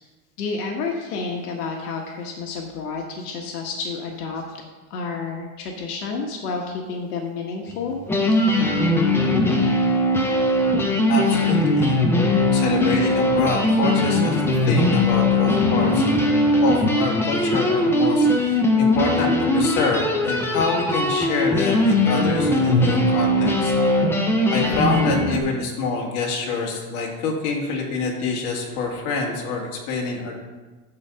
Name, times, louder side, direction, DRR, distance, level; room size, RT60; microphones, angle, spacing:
voice 1, 0.4-4.4 4.9-8.0, left 4 dB, 85° left, 1 dB, 1.4 m, -30 dB
sound 1, 7.7-7.8 8.1-25.4, left 1 dB, 5° left, 0.5 m, -20 dB
voice 2, 11.1-12.0 12.5-16.0 16.6-23.7 24.5-30.4, left 4 dB, 55° left, -1 dB, 2.3 m, -26 dB
9.5 x 4.1 x 6.8 m, 1.3 s
supercardioid pair, 145°, 44 cm